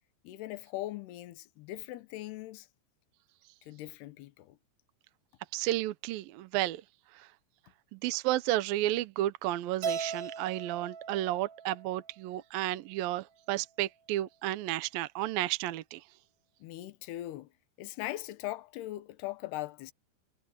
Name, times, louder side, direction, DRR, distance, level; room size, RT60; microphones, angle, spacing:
voice 1, 0.2-2.7 3.6-4.6 16.6-17.5 17.8-19.9, left 15 dB, 75° left, 3.1 m, -40 dB
voice 2, 5.5-6.8 7.2-7.3 7.9-16.0, right 15 dB, 75° right, 2.3 m, -32 dB
Keyboard (musical), 9.8-12.2, right 6 dB, 35° right, 3.6 m, -38 dB
omnidirectional pair, 4.8 m